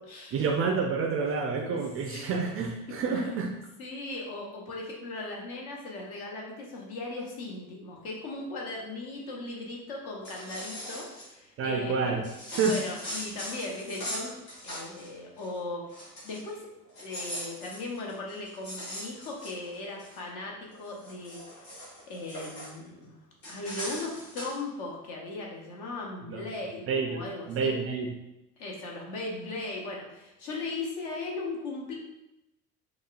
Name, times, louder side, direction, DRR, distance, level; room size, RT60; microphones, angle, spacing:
voice 1, 0.3-3.6 11.6-12.2 12.6-12.8 26.3-26.4 26.9-28.1, right 5 dB, 30° right, 2 dB, 0.4 m, -29 dB
voice 2, 3.8-12.3 12.6-16.7 17.0-21.7 22.1-23.2 23.5-27.8 28.6-32.0, left 2 dB, 55° left, -1 dB, 1.0 m, -38 dB
sound 1, 10.1-11.3 12.2-15.1 15.4-15.6 15.9-16.5 16.9-20.2 20.7-22.7 23.4-24.6, equal, 70° left, 1.3 m, -40 dB
4.6 x 2.2 x 2.4 m, 0.93 s
figure-of-eight pair, 55°, 45 cm